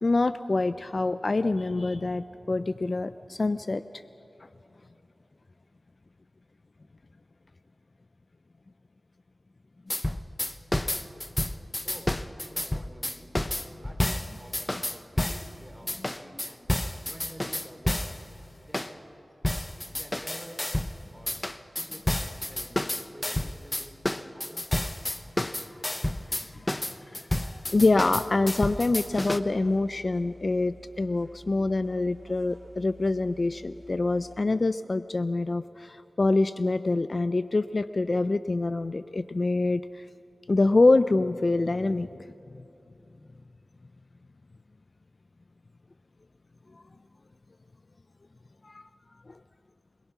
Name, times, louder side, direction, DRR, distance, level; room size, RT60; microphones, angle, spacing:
voice 1, 0.0-3.8 25.4-25.5 26.5-26.7 27.1-27.2 27.7-40.1 40.5-42.1 48.6-48.8 49.3-49.4, left 2 dB, 45° left, 13 dB, 0.4 m, -25 dB
sound 1, 9.9-15.5 15.9-18.2 18.7-18.9 19.4-21.0 21.3-29.4, left 1 dB, 20° left, 0.8 m, -30 dB
voice 2, 11.8-16.7 17.0-18.1 18.6-19.1 19.8-20.6 21.1-21.4 21.7-24.9, equal, 10° right, 2 dB, 3.6 m, -49 dB
sound 2, 27.3-34.4, equal, 40° right, 2.1 m, -51 dB
25.5 x 21.5 x 6.0 m, 2.9 s
wide cardioid pair, 75°, 0 cm